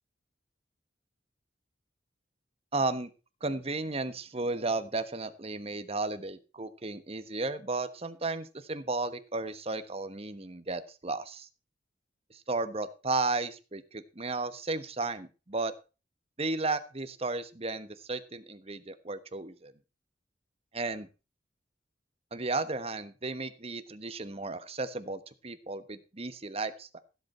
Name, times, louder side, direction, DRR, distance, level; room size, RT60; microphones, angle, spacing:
voice 1, 2.7-3.1 3.4-11.5 12.3-15.7 16.4-19.7 20.7-21.1 22.3-27.0, right 3 dB, 35° right, 11 dB, 1.2 m, -34 dB
16.0 x 8.2 x 4.4 m, 0.32 s
head